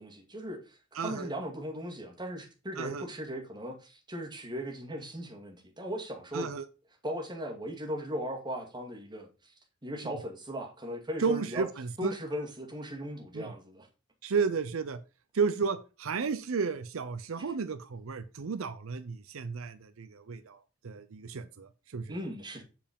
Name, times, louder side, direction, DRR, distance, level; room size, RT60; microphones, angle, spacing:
voice 1, 0.0-0.8 1.0-6.5 7.0-9.5 9.8-11.7 12.0-13.9 22.1-22.6, equal, 20° right, 2.2 m, -38 dB
voice 2, 1.0-1.3 2.8-3.0 6.3-6.6 10.0-10.1 11.2-12.1 13.3-13.5 14.2-15.0 15.3-20.6 20.8-22.2, right 5 dB, 85° right, 0.6 m, -33 dB
7.3 x 4.7 x 5.3 m
head